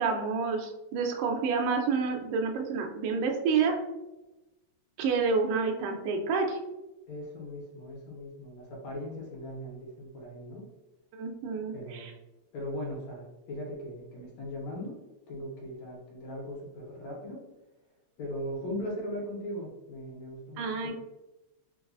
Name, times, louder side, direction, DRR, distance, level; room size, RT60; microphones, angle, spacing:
voice 1, 0.0-3.8 5.0-6.6 11.1-12.1 20.6-20.9, right 5 dB, 90° right, 3 dB, 1.3 m, -29 dB
voice 2, 7.1-10.7 11.7-12.2 12.5-15.0 15.3-17.4 18.2-20.9, equal, 75° left, -2 dB, 2.0 m, -39 dB
4.6 x 2.3 x 2.4 m, 1.0 s
omnidirectional pair, 3.3 m